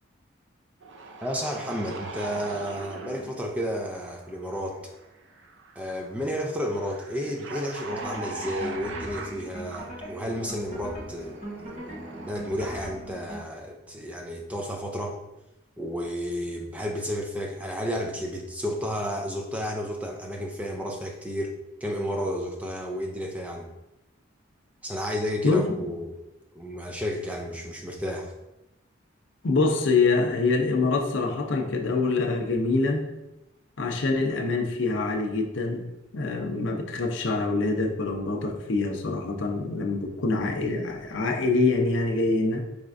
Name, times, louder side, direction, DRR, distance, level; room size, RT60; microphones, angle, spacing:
sound 1, 0.8-12.8, right 3 dB, 65° right, 0.5 m, -42 dB
voice 1, 1.2-4.8 5.8-15.2 15.8-21.5 21.8-23.7 24.8-26.2 26.5-28.3, equal, 5° right, 1 dB, 0.4 m, -32 dB
sound 2, 7.9-13.4, right 1 dB, 35° right, 1.0 m, -40 dB
voice 2, 29.4-33.1 33.8-35.9 36.1-42.6, left 3 dB, 65° left, 3 dB, 0.6 m, -25 dB
5.1 x 3.3 x 2.5 m, 0.92 s
head